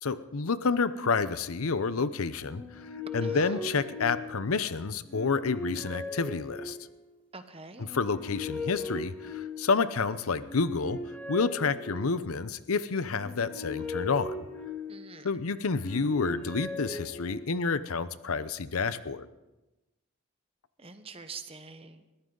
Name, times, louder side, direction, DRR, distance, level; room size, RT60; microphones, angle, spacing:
voice 1, 0.0-6.8 7.8-11.0 11.3-14.4 15.2-19.3, left 4 dB, 75° left, 14 dB, 0.7 m, -29 dB
sound 1, 2.4-4.6 5.1-7.1 7.8-9.9 10.4-12.4 13.1-15.2 15.7-17.7, left 3 dB, 5° left, 1.9 m, -38 dB
voice 2, 3.2-3.6 7.3-7.9 14.9-15.3 20.8-22.0, right 4 dB, 25° right, 9 dB, 0.9 m, -45 dB
22.0 x 14.5 x 3.9 m, 1.0 s
head